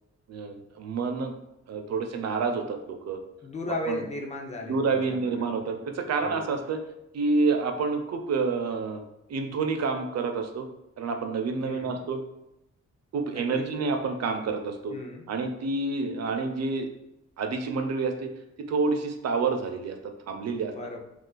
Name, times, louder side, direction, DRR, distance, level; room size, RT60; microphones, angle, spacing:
voice 1, 0.3-1.3 1.7-3.2 3.9-4.0 4.7-6.8 7.1-9.0 9.3-10.7 11.0-12.2 13.1-15.0 15.3-16.9 17.4-18.3 18.6-20.7, right 4 dB, 60° right, 6 dB, 0.4 m, -28 dB
voice 2, 3.4-5.6 6.2-6.4 11.6-12.0 13.3-13.8 14.9-15.3 20.7-21.0, left 2 dB, 25° left, 0 dB, 0.4 m, -36 dB
2.4 x 2.4 x 3.7 m, 0.88 s
wide cardioid pair, 130°, 29 cm